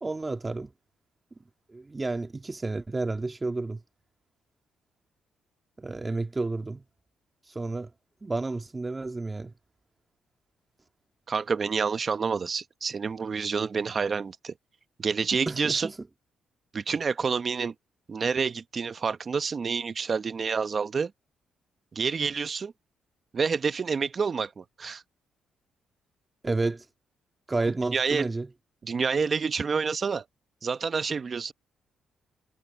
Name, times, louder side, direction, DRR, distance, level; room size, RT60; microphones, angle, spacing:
voice 1, 0.0-0.7 1.7-3.8 5.8-6.8 7.6-7.9 8.2-9.5 15.5-15.9 26.4-26.9 27.5-28.5, right 3 dB, 20° right, 1.8 m, -31 dB
voice 2, 11.3-14.5 15.0-15.9 16.7-17.7 18.1-21.1 21.9-22.7 23.3-25.0 27.9-28.3 28.8-30.2 30.6-31.5, right 5 dB, 40° right, 0.9 m, -28 dB
cardioid pair, 90°, 0 cm